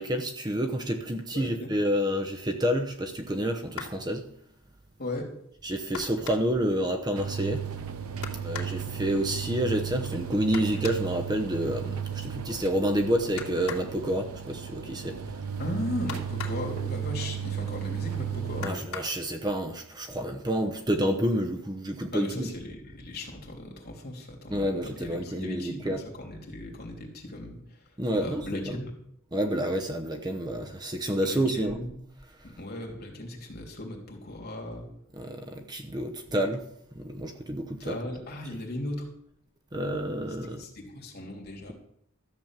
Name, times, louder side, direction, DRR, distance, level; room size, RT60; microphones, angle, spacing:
voice 1, 0.0-4.3 5.6-7.6 8.4-15.2 18.6-22.5 24.5-26.0 28.0-28.8 29.3-31.8 35.1-36.6 36.9-38.0 38.5-38.6 39.7-40.7, equal, 20° right, 0.9 m, -29 dB
voice 2, 1.3-1.7 5.0-5.3 15.6-18.8 22.1-27.8 28.1-28.9 31.2-31.9 32.4-34.9 37.8-39.1 40.6-41.7, left 1 dB, 45° left, 3.2 m, -37 dB
sound 1, 3.7-4.1 5.9-6.6 8.2-8.8 10.5-11.1 13.4-13.9 16.1-16.7 18.6-19.2 20.3-20.4 20.9-21.1, left 6 dB, 80° left, 2.4 m, -39 dB
sound 2, 7.2-18.7, right 8 dB, 85° right, 1.1 m, -35 dB
13.5 x 7.3 x 7.4 m
head